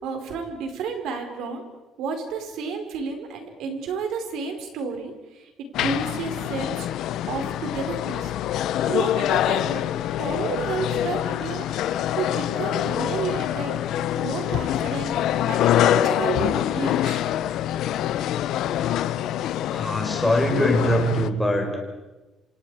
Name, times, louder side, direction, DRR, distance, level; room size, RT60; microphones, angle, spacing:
voice 1, 0.0-1.6 2.0-6.9 7.3-8.6 8.9-9.9 10.2-11.7 12.2-13.7 14.2-15.2 15.4-17.2, right 5 dB, 75° right, 5 dB, 4.7 m, -31 dB
sound 1, 5.7-21.3, left 11 dB, 65° left, 0.8 m, -25 dB
voice 2, 19.7-21.8, equal, 5° left, 1 dB, 4.6 m, -23 dB
28.0 x 26.5 x 5.0 m, 1.1 s
cardioid pair, 170°, 0 cm